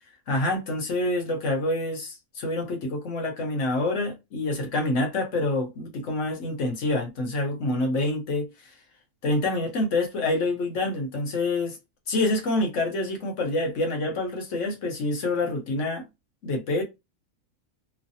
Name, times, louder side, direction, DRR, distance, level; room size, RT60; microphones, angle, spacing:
voice 1, 0.3-8.5 9.2-11.8 12.1-16.0 16.4-16.8, left 2 dB, 60° left, 1.1 m, -27 dB
3.2 x 2.2 x 2.6 m
omnidirectional pair, 1.5 m